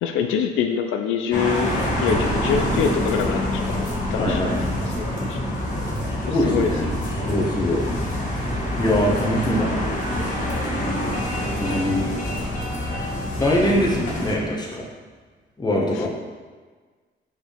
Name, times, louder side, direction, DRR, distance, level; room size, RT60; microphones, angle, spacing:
voice 1, 0.0-1.7 2.0-3.4 3.7-3.8 4.1-4.4 4.9-5.4 6.3-6.7 15.9-16.1, left 7 dB, 90° left, 4 dB, 0.5 m, -24 dB
sound 1, 1.3-14.3, left 1 dB, 40° left, 1.7 m, -26 dB
voice 2, 4.2-4.6 6.3-6.9 7.2-7.9 8.8-10.0 11.6-12.3 13.4-14.9 15.6-16.1, left 1 dB, 20° left, -2 dB, 1.4 m, -22 dB
5.9 x 5.2 x 3.5 m, 1.4 s
cardioid pair, 90°, 20 cm